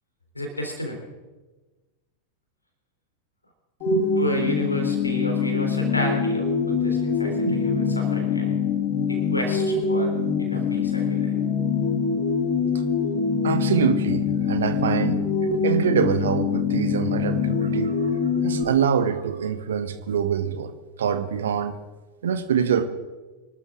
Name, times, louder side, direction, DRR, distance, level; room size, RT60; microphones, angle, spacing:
voice 1, 0.4-1.0 4.2-8.6 9.1-10.1 10.4-11.3, equal, 85° left, 3 dB, 3.6 m, -31 dB
sound 1, 3.8-18.6, left 5 dB, 45° left, 1.8 m, -24 dB
voice 2, 13.4-20.7 21.0-21.7 22.2-22.9, right 7 dB, 65° right, 10 dB, 1.3 m, -25 dB
25.0 x 12.5 x 3.8 m, 1.2 s
figure-of-eight pair, 90°, 0 cm